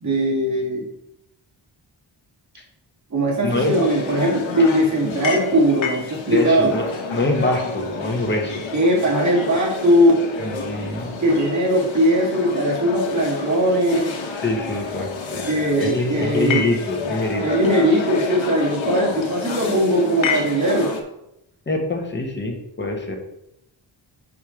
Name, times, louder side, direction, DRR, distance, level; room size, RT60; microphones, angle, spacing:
voice 1, 0.0-0.8 3.1-6.7 8.7-10.2 11.2-14.1 15.5-16.6 17.4-20.9, equal, 40° right, -4 dB, 2.3 m, -19 dB
voice 2, 3.4-3.9 5.0-5.2 6.3-8.6 10.4-11.1 14.4-15.5 15.8-17.6 21.7-23.2, left 2 dB, 25° left, 2 dB, 1.2 m, -25 dB
sound 1, 3.5-21.0, left 4 dB, 90° left, 1.1 m, -29 dB
5.0 x 4.6 x 5.9 m, 0.83 s
wide cardioid pair, 125°, 45 cm